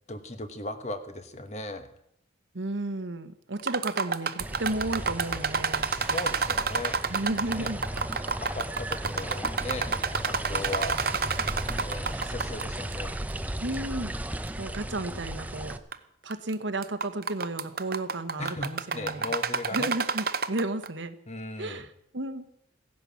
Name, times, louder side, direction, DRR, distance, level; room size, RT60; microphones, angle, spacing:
voice 1, 0.1-1.9 5.9-6.9 7.5-7.7 8.4-9.9 10.2-11.0 11.8-12.0 12.3-13.1 18.4-19.9 21.3-21.8, left 2 dB, 35° left, 9 dB, 1.2 m, -37 dB
voice 2, 2.5-5.9 7.1-7.8 12.1-12.3 13.6-14.1 14.6-15.8 16.2-19.3 19.7-21.2 21.6-22.5, right 2 dB, 80° right, 9 dB, 1.2 m, -33 dB
sound 1, 3.6-12.6 12.9-13.0 13.7-13.8 14.5-14.6 15.7-15.9 16.3-16.5 16.8-20.9, right 5 dB, 50° right, 0.7 m, -29 dB
sound 2, 4.4-15.8, right 1 dB, 10° right, 0.6 m, -36 dB
16.5 x 10.5 x 7.1 m, 0.75 s
head